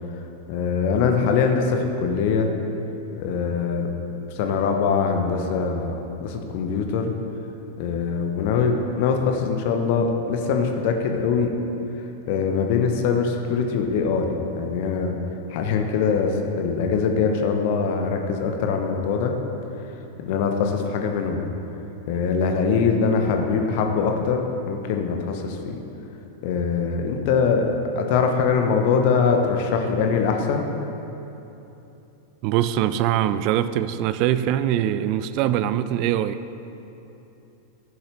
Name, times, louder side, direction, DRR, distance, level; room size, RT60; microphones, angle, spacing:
voice 1, 0.5-2.5 3.1-3.9 4.3-7.1 7.8-11.5 12.0-14.3 14.6-15.2 15.5-19.3 20.2-21.4 22.1-25.8 26.4-30.6, left 5 dB, 50° left, 4 dB, 1.0 m, -23 dB
voice 2, 32.4-36.4, right 11 dB, 45° right, 13 dB, 0.4 m, -22 dB
14.0 x 7.1 x 3.4 m, 3.0 s
figure-of-eight pair, 90°, 0 cm